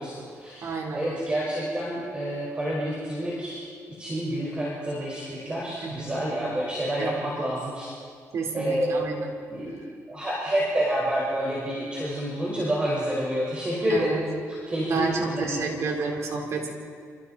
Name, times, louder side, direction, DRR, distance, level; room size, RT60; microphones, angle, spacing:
voice 1, 0.0-3.6 4.0-7.9 8.5-9.0 9.5-14.1 14.5-15.8, equal, 20° right, -5 dB, 5.9 m, -28 dB
voice 2, 0.6-1.3 5.8-6.1 7.0-7.2 8.3-9.3 13.9-14.2 14.8-16.7, right 4 dB, 60° right, 1 dB, 4.6 m, -30 dB
28.5 x 28.0 x 4.6 m, 2.2 s
cardioid pair, 130°, 6 cm